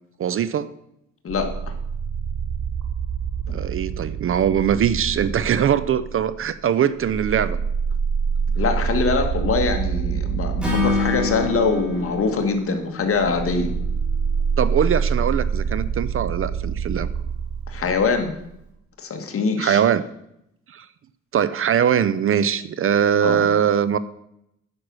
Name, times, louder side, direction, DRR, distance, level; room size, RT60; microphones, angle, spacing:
voice 1, 0.2-0.7 3.5-7.6 14.6-17.1 19.6-20.0 20.7-20.9 21.3-24.0, right 8 dB, 45° right, 16 dB, 0.5 m, -21 dB
sound 1, 1.3-6.5 6.9-18.5, right 6 dB, 75° right, 2.1 m, -26 dB
voice 2, 8.6-13.7 17.7-18.4 19.0-19.8 23.2-23.4, left 4 dB, 45° left, 5 dB, 1.8 m, -23 dB
Acoustic guitar / Strum, 10.6-13.9, left 4 dB, 5° right, 3.1 m, -27 dB
9.7 x 6.0 x 6.3 m, 0.79 s
cardioid pair, 90°, 30 cm